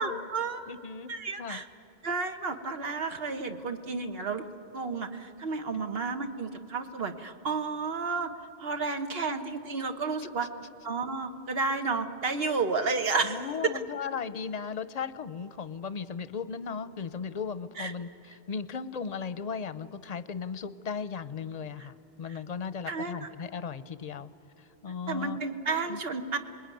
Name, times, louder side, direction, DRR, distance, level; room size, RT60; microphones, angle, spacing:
voice 1, 0.0-0.7 1.1-1.6 2.0-4.4 4.7-8.3 8.6-10.5 10.8-13.4 13.7-13.8 17.8-17.9 22.3-22.4 22.9-23.3 25.1-26.4, right 4 dB, 70° right, 6 dB, 1.4 m, -31 dB
voice 2, 0.7-1.1 1.4-1.6 5.7-5.8 13.2-24.3 24.6-25.4 25.7-26.0, left 6 dB, 45° left, 13 dB, 0.7 m, -37 dB
27.5 x 21.0 x 9.2 m, 2.7 s
omnidirectional pair, 1.0 m